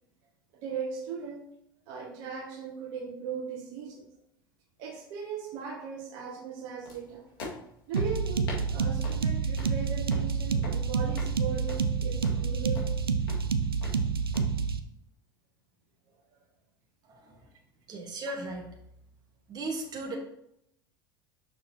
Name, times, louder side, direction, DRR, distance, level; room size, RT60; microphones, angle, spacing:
voice 1, 0.5-1.4 1.9-4.1 4.8-7.2 7.9-12.8, right 6 dB, 60° right, 0 dB, 1.5 m, -38 dB
sound 1, 6.9-14.4, left 3 dB, 75° left, 1.9 m, -46 dB
sound 2, 7.9-14.8, right 5 dB, 85° right, 0.5 m, -28 dB
voice 2, 17.9-18.7 19.5-20.2, right 2 dB, 35° right, 0 dB, 1.4 m, -35 dB
7.2 x 6.3 x 2.8 m, 0.77 s
figure-of-eight pair, 75°, 12 cm